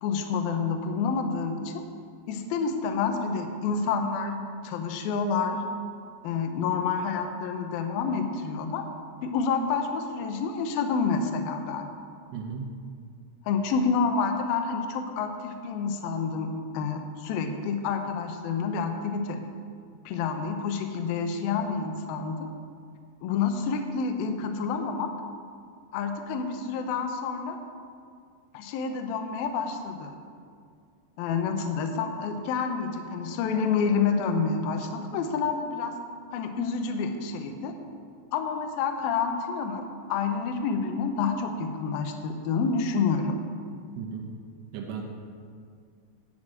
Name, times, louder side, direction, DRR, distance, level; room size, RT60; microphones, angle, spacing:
voice 1, 0.0-1.8 2.3-5.6 6.2-8.8 9.2-11.9 13.5-16.5 16.7-19.4 20.1-22.5 23.2-25.1 25.9-27.6 28.5-30.1 31.2-36.0 36.3-37.7 38.3-43.4, left 5 dB, 75° left, 5 dB, 2.3 m, -28 dB
voice 2, 12.3-12.7 44.0-44.2 44.7-45.0, right 6 dB, 80° right, 0 dB, 3.3 m, -35 dB
10.0 x 6.3 x 8.8 m, 2.2 s
omnidirectional pair, 5.1 m